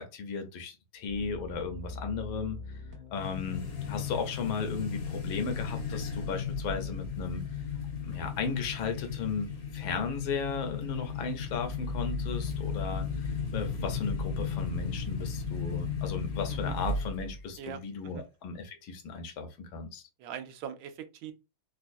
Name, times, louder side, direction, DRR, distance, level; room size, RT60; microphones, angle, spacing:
voice 1, 0.0-2.6 3.1-7.4 8.0-20.0, left 5 dB, 80° left, 1.6 m, -35 dB
sound 1, 1.1-5.5 5.8-6.0, left 3 dB, 40° right, 1.3 m, -45 dB
sound 2, 3.2-17.4, left 5 dB, 60° left, 1.1 m, -35 dB
voice 2, 17.6-18.2 20.2-21.3, right 9 dB, 85° right, 1.5 m, -42 dB
4.2 x 2.3 x 2.5 m
omnidirectional pair, 2.2 m